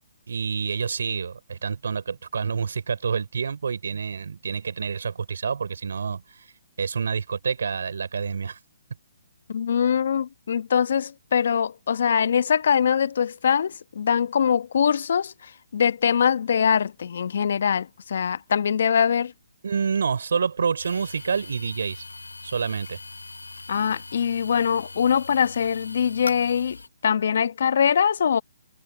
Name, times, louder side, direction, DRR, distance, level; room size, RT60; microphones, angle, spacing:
voice 1, 0.3-6.5 6.8-8.6 19.6-22.1 22.4-23.0, right 6 dB, 65° right, 3.8 m, -28 dB
voice 2, 9.5-19.3 23.7-26.8 27.0-28.4, left 7 dB, 60° left, 1.1 m, -23 dB
sound 1, 20.8-26.9, left 3 dB, 85° left, 1.3 m, -41 dB
figure-of-eight pair, 135°, 0 cm